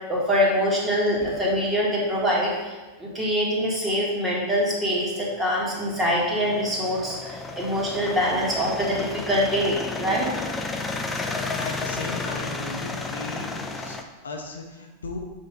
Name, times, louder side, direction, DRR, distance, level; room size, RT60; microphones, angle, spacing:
voice 1, 0.1-10.3, equal, 15° right, -4 dB, 1.9 m, -24 dB
sound 1, 5.0-14.0, left 3 dB, 15° left, 0.6 m, -32 dB
voice 2, 11.6-15.2, left 2 dB, 70° left, 2 dB, 0.8 m, -37 dB
6.5 x 3.7 x 5.1 m, 1.2 s
figure-of-eight pair, 90°, 0 cm